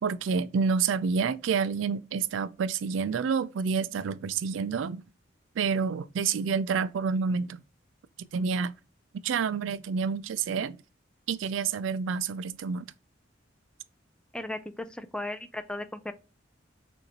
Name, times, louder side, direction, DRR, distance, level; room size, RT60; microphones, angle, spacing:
voice 1, 0.0-5.0 5.6-7.6 8.2-8.7 9.2-10.8 11.3-12.9, right 5 dB, 80° right, 0.4 m, -28 dB
voice 2, 14.3-16.1, left 1 dB, 5° left, 0.4 m, -36 dB
6.5 x 2.6 x 2.8 m
head